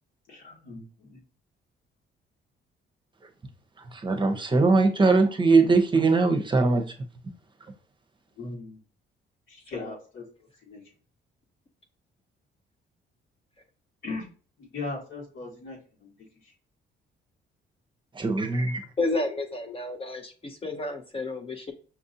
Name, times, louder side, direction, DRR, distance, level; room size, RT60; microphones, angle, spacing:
voice 1, 0.3-1.2 8.4-8.8 9.5-10.2 10.6-10.8 14.0-14.3 14.6-16.1 16.4-16.5, left 3 dB, 70° left, 1.5 m, -38 dB
voice 2, 3.9-6.8 18.1-18.8, right 3 dB, 25° right, 0.8 m, -21 dB
voice 3, 19.0-21.7, left 2 dB, 30° left, 0.6 m, -31 dB
5.8 x 2.6 x 2.7 m
cardioid pair, 90°, 20 cm